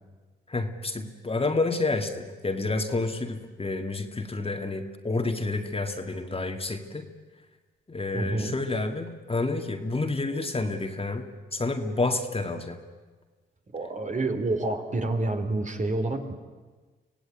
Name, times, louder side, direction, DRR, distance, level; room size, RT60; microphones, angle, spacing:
voice 1, 0.5-7.1 7.9-12.8, left 3 dB, 30° left, 5 dB, 2.3 m, -29 dB
voice 2, 8.1-8.5 13.7-16.3, right 2 dB, 40° right, 5 dB, 3.3 m, -28 dB
25.0 x 16.5 x 9.2 m, 1.3 s
cardioid pair, 65°, 20 cm